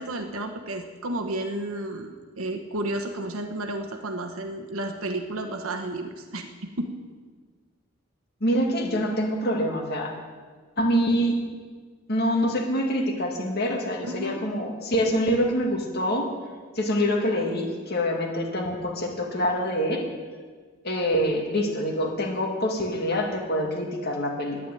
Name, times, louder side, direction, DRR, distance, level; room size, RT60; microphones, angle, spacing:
voice 1, 0.0-6.5 6.8-6.9 14.1-14.4, right 1 dB, 85° right, 5 dB, 1.2 m, -32 dB
voice 2, 8.4-10.1 10.8-11.4 12.1-16.3 16.8-20.0 20.8-24.6, equal, 50° left, 1 dB, 2.2 m, -25 dB
10.5 x 10.0 x 9.2 m, 1.5 s
head